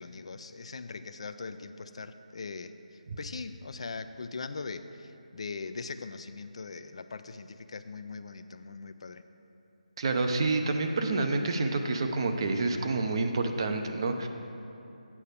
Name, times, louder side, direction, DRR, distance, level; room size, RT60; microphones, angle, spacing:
voice 1, 0.0-9.3, left 4 dB, 50° left, 10 dB, 0.3 m, -41 dB
voice 2, 10.0-14.3, right 3 dB, 40° right, 5 dB, 0.6 m, -28 dB
8.6 x 5.6 x 6.6 m, 2.8 s
figure-of-eight pair, 165°, 4 cm